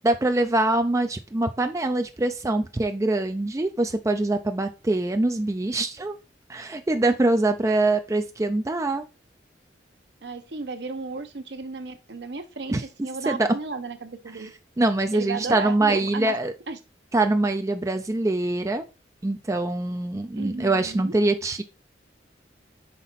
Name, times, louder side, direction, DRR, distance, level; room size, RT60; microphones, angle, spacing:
voice 1, 0.0-6.2 6.5-9.0 12.7-12.8 13.3-13.5 14.8-16.5 17.1-18.8 19.2-21.6, right 2 dB, 15° right, 6 dB, 0.4 m, -24 dB
voice 2, 10.2-14.5 15.1-16.3 16.7-16.8 20.4-21.1, right 4 dB, 65° right, 8 dB, 0.8 m, -34 dB
5.7 x 4.1 x 4.0 m, 0.30 s
head